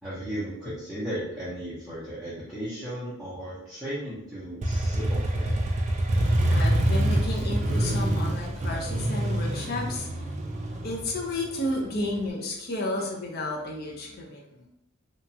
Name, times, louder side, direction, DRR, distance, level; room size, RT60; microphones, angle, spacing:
voice 1, 0.0-5.5, equal, ahead, -11 dB, 0.6 m, -35 dB
Motorcycle, 4.6-12.3, right 1 dB, 35° right, 0.3 m, -26 dB
voice 2, 6.5-10.1 10.8-14.7, left 1 dB, 45° left, -1 dB, 0.6 m, -32 dB
2.9 x 2.3 x 2.7 m, 0.82 s
head